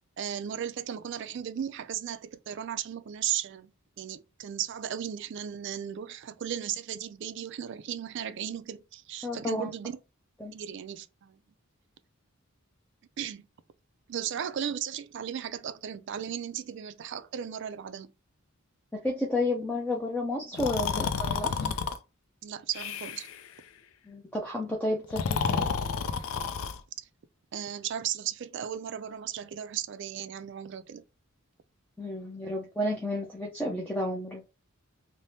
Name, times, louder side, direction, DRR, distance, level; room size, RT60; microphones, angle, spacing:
voice 1, 0.2-10.0 10.5-11.4 13.2-13.5 14.1-18.1 22.4-23.3 27.5-31.0, right 9 dB, 55° right, 0.3 m, -36 dB
voice 2, 9.2-9.7 10.4-10.5 18.9-21.8 24.1-25.7 32.0-34.4, left 1 dB, 5° left, 0.4 m, -31 dB
Breathing, 20.5-22.0 22.7-23.4 25.0-26.8, left 6 dB, 75° left, 0.4 m, -30 dB
3.3 x 2.1 x 2.7 m
head